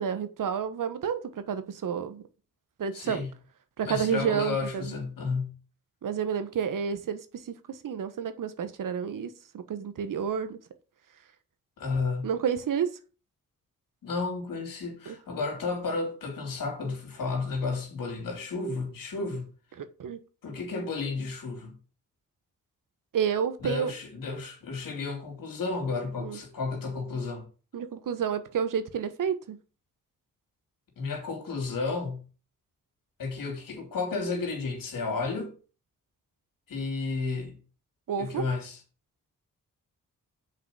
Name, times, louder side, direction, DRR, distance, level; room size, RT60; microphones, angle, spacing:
voice 1, 0.0-2.2 2.8-3.2 3.8-4.9 6.0-7.2 7.5-10.6 12.2-12.9 15.1-15.2 19.8-20.2 23.1-23.9 26.2-26.4 27.7-29.6 38.1-38.5, right 7 dB, 70° right, 1.2 m, -30 dB
voice 2, 2.9-3.3 3.8-5.6 11.8-12.3 14.0-19.5 20.4-21.8 23.6-27.5 31.0-32.3 33.2-35.5 36.7-37.6 38.2-38.8, left 4 dB, 80° left, 3.0 m, -32 dB
6.5 x 4.9 x 6.9 m
cardioid pair, 55°, 33 cm